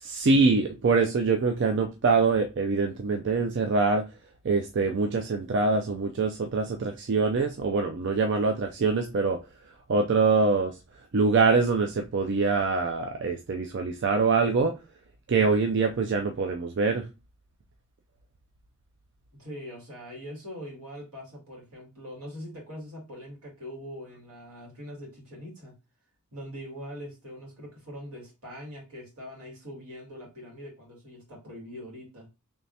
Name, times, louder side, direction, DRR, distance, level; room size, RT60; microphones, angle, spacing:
voice 1, 0.0-4.0 4.4-9.4 9.9-10.7 11.1-14.7 15.3-17.0, right 4 dB, 55° right, 0.4 m, -24 dB
voice 2, 19.4-25.7 26.3-32.3, equal, 80° right, 2.2 m, -42 dB
3.3 x 3.2 x 2.7 m
head